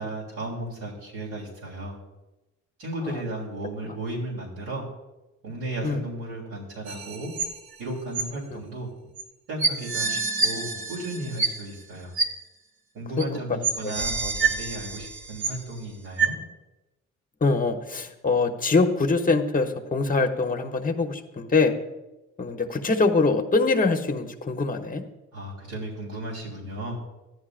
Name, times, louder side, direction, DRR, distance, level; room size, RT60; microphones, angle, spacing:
voice 1, 0.0-1.9 2.8-4.8 5.4-7.3 7.8-8.9 9.5-12.1 12.9-16.4 25.3-27.0, right 1 dB, 85° right, -7 dB, 3.3 m, -34 dB
sound 1, 6.9-7.8 8.1-8.2 9.2-9.3 9.6-11.8 12.2-12.3 13.2-13.3 13.6-15.8 16.2-16.3, right 4 dB, 70° right, 1.3 m, -27 dB
voice 2, 17.4-21.7 22.4-25.0, left 3 dB, 30° left, 5 dB, 1.0 m, -24 dB
14.5 x 10.5 x 2.5 m, 1.0 s
cardioid pair, 90°, 30 cm